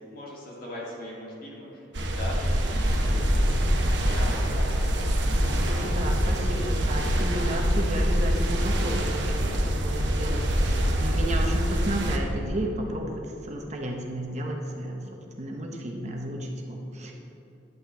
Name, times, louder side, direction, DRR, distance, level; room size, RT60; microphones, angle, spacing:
voice 1, 0.0-4.8, left 1 dB, 50° left, -5 dB, 2.3 m, -40 dB
sound 1, 1.9-12.2, equal, 65° right, 1.0 m, -25 dB
voice 2, 5.3-17.1, right 1 dB, 35° right, 1 dB, 0.9 m, -33 dB
10.5 x 8.4 x 3.4 m, 2.8 s
head